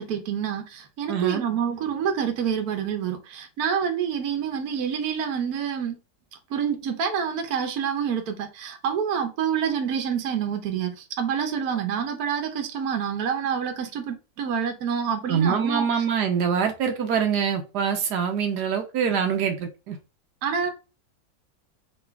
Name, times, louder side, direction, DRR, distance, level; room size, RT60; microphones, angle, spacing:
voice 1, 0.0-6.0 6.5-16.0 20.4-20.7, right 7 dB, 70° right, 1.3 m, -27 dB
voice 2, 1.1-1.5 15.3-20.0, right 7 dB, 90° right, 1.4 m, -24 dB
3.9 x 3.2 x 3.3 m
omnidirectional pair, 1.7 m